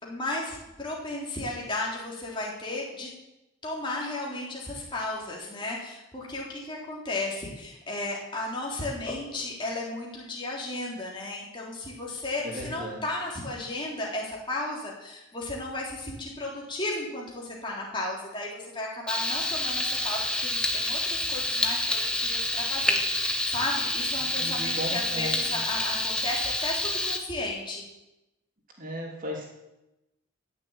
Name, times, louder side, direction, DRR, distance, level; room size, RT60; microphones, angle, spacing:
voice 1, 0.0-3.1 3.6-27.8, left 2 dB, 20° left, -3 dB, 3.6 m, -34 dB
voice 2, 12.4-13.0 24.2-25.6 28.8-29.5, equal, 40° right, -1 dB, 3.4 m, -36 dB
Frying (food), 19.1-27.2, left 1 dB, 5° left, 1.1 m, -28 dB
15.0 x 7.2 x 8.9 m, 0.94 s
head